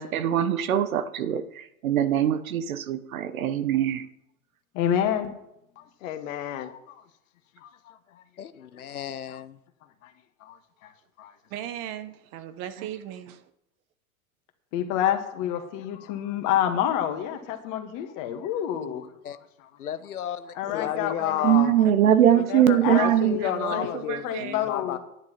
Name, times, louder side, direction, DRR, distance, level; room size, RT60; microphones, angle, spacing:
voice 1, 0.0-4.1 21.4-23.4, right 10 dB, 70° right, 1.1 m, -22 dB
voice 2, 4.7-5.3 14.7-19.1 20.6-21.5 22.4-23.9 24.2-25.0, left 10 dB, 45° left, 2.1 m, -28 dB
voice 3, 5.7-7.1 7.6-8.2 9.3-9.4 9.8-10.1 10.4-11.4 15.9-16.6 17.6-17.7 18.0-18.5 18.8-19.7 20.6-21.9 22.8-25.0, left 10 dB, 65° left, 1.4 m, -34 dB
voice 4, 8.4-9.6 19.2-19.4 19.8-20.5 20.7-20.9 22.6-22.8, left 9 dB, 85° left, 0.8 m, -37 dB
voice 5, 11.5-13.4 22.6-24.7, right 10 dB, 45° right, 1.2 m, -36 dB
10.5 x 9.7 x 5.8 m
hypercardioid pair, 90°, 43 cm